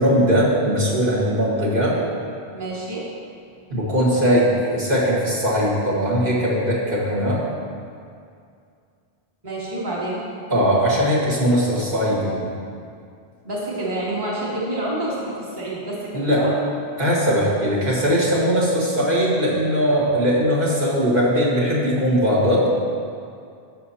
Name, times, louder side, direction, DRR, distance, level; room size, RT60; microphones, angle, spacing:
voice 1, 0.0-2.0 3.7-7.4 10.5-12.5 16.1-16.5 17.0-22.7, equal, 55° right, -7 dB, 1.8 m, -20 dB
voice 2, 2.5-3.1 9.4-10.2 13.4-16.5, right 1 dB, 25° right, -6 dB, 1.4 m, -28 dB
14.5 x 6.0 x 2.8 m, 2.4 s
omnidirectional pair, 1.0 m